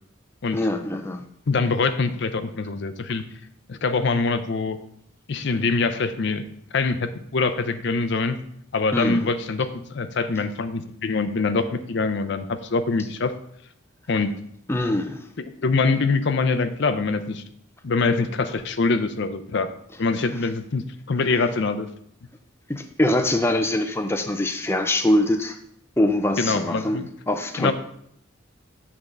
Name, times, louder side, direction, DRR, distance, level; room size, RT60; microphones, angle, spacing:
voice 1, 0.5-1.2 8.9-9.3 14.7-15.3 22.7-25.6 26.0-27.7, left 1 dB, 10° left, 6 dB, 0.5 m, -23 dB
voice 2, 1.5-3.2 3.7-4.8 5.3-6.4 6.7-8.4 8.7-13.3 14.1-14.3 15.6-17.4 17.8-19.7 20.0-21.9 26.4-27.1 27.6-27.7, left 4 dB, 55° left, 10 dB, 0.5 m, -24 dB
8.3 x 3.6 x 6.5 m, 0.70 s
head